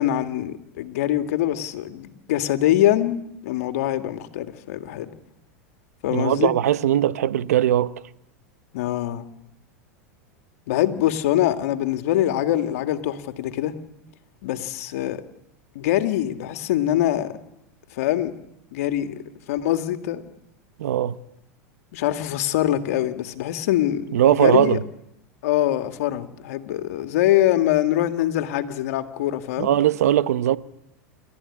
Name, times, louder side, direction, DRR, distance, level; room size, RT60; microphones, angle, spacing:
voice 1, 0.0-5.1 6.0-6.5 8.7-9.3 10.7-13.8 14.4-15.2 15.8-17.3 17.9-18.3 18.7-19.2 19.5-20.2 21.9-24.1 24.4-24.8 25.4-29.7, left 13 dB, 70° left, 2.0 m, -23 dB
voice 2, 6.1-7.9 20.8-21.2 24.1-24.8 29.6-30.6, right 11 dB, 80° right, 0.9 m, -19 dB
29.0 x 13.0 x 9.9 m
hypercardioid pair, 115°, 8 cm